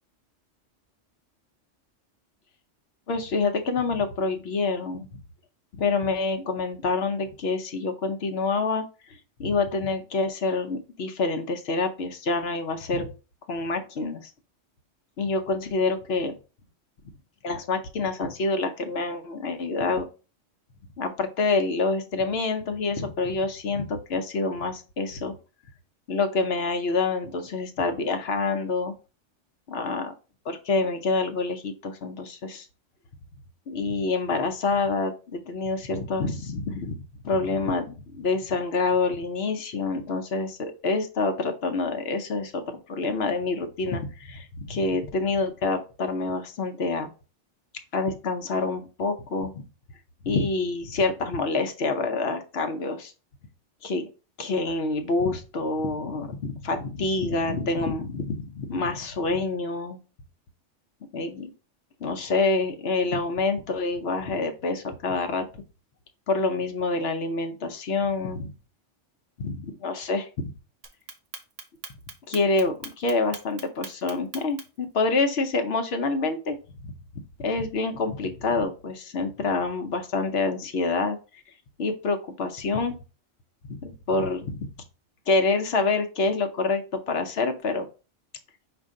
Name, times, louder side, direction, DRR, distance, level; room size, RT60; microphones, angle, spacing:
voice 1, 3.1-5.1 5.7-13.1 13.5-14.3 15.2-16.3 17.4-20.1 21.0-25.3 26.1-28.9 29.7-30.1 30.4-32.7 33.7-37.0 37.2-42.6 42.9-47.1 47.9-49.6 50.2-53.1 53.8-54.1 54.4-60.0 61.1-61.5 62.0-65.4 66.3-68.5 69.4-70.3 72.3-81.4 81.8-83.0 83.7-84.7 85.3-87.9, left 3 dB, 60° left, 6 dB, 0.8 m, -27 dB
Clock, 70.8-74.8, right 6 dB, 75° right, 1.1 m, -40 dB
5.3 x 2.5 x 3.6 m, 0.33 s
omnidirectional pair, 1.3 m